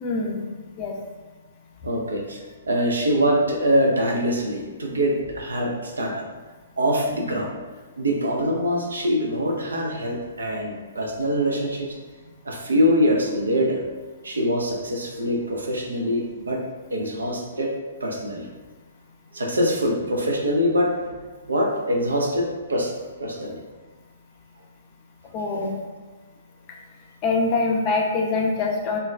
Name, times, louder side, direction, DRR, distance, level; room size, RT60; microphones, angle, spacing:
voice 1, 0.0-0.4 0.8-0.9 25.3-25.7 27.2-29.0, left 3 dB, 30° left, -1 dB, 0.4 m, -24 dB
voice 2, 1.8-2.4 2.7-6.3 6.8-7.6 8.0-12.0 12.4-13.8 14.2-16.6 16.9-17.7 18.0-18.5 19.3-21.0 21.5-22.9 23.2-23.6 25.5-25.7, equal, 70° right, 0 dB, 0.4 m, -24 dB
2.2 x 2.2 x 3.2 m, 1.3 s
figure-of-eight pair, 120°, 0 cm